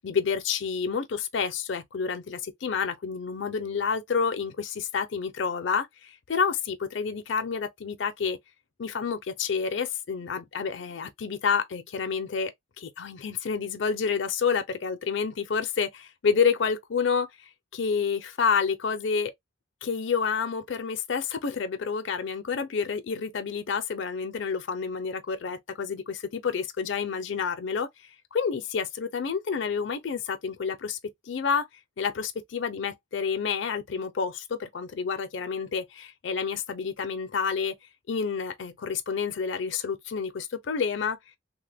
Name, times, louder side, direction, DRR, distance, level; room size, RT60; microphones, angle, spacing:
voice 1, 0.0-8.4 8.8-12.5 12.8-17.3 17.7-19.3 19.8-27.9 28.3-31.0 31.3-31.7 32.0-37.7 38.1-41.2, left 6 dB, 65° left, 0.5 m, -29 dB
2.9 x 2.1 x 3.3 m
head